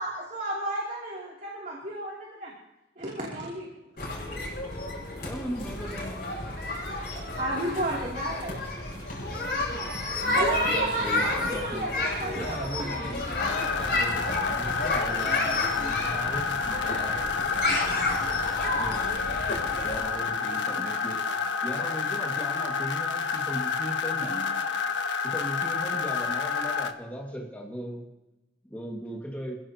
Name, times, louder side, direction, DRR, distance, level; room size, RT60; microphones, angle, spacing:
voice 1, 0.0-2.5 3.0-3.7 6.7-12.8, right 1 dB, 45° right, -3 dB, 3.0 m, -33 dB
sound 1, 4.0-20.0, left 2 dB, 50° left, 6.7 m, -31 dB
voice 2, 5.2-6.3 10.2-11.9 12.3-17.2 17.7-19.0 19.8-21.2 21.6-24.6 25.2-28.0 28.7-29.6, equal, 10° left, -2 dB, 2.0 m, -38 dB
voice 3, 11.9-12.3 12.7-14.0 15.1-18.1 19.0-21.5, right 1 dB, 60° right, -2 dB, 5.9 m, -45 dB
sound 2, 13.4-26.9, left 5 dB, 85° left, 1.3 m, -29 dB
27.0 x 16.0 x 3.0 m, 1.0 s
head